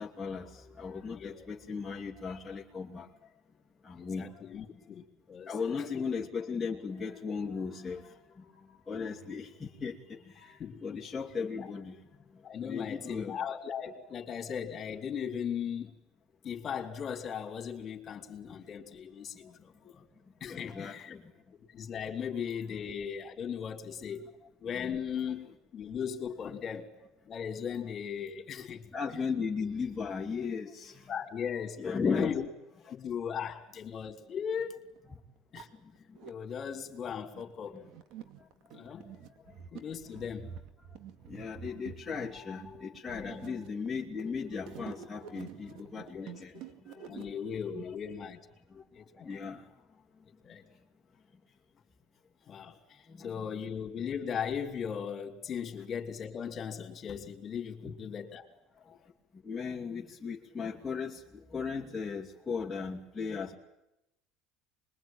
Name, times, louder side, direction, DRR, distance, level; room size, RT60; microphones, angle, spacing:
voice 1, 0.0-3.1 3.8-4.3 4.7-4.8 5.5-12.0 12.3-13.4 19.8-19.9 20.5-21.3 24.7-25.0 28.9-31.1 31.8-32.3 35.1-35.2 35.8-36.2 37.7-37.8 38.4-38.5 38.7-38.8 39.5-39.6 41.3-46.6 46.8-47.3 48.7-48.8 49.2-49.7 53.1-53.6 57.8-57.9 58.8-59.0 59.4-63.5, left 5 dB, 15° left, -3 dB, 2.8 m, -37 dB
voice 2, 1.1-1.5 4.0-6.0 10.6-11.0 11.6-11.7 12.4-15.9 16.4-20.0 20.4-21.2 21.7-24.3 24.6-25.5 25.7-26.9 27.3-28.8 29.1-29.2 31.1-32.5 32.9-34.8 35.5-35.7 36.2-37.8 38.7-39.0 39.7-40.5 43.2-43.4 46.1-46.4 47.1-48.4 48.9-49.3 50.4-50.6 52.5-58.5, left 7 dB, 40° left, 4 dB, 3.7 m, -38 dB
sound 1, 34.2-34.3 35.0-35.1 35.4-36.3 37.0-47.8, right 8 dB, 65° right, 2.2 m, -48 dB
25.5 x 22.0 x 9.1 m, 0.90 s
supercardioid pair, 100°, 0 cm